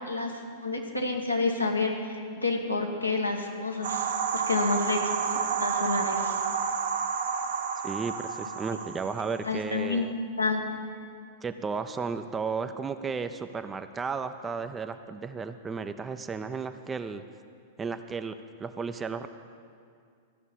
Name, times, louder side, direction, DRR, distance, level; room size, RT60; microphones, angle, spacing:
voice 1, 0.6-6.4 9.4-10.0 10.4-10.7, left 3 dB, 85° left, 1 dB, 1.4 m, -29 dB
sound 1, 3.8-9.5, right 6 dB, 55° right, 0.8 m, -30 dB
voice 2, 7.8-10.1 11.4-17.2 17.8-19.3, right 5 dB, 15° right, 9 dB, 0.4 m, -34 dB
13.5 x 6.2 x 8.7 m, 2.2 s
figure-of-eight pair, 95°, 0 cm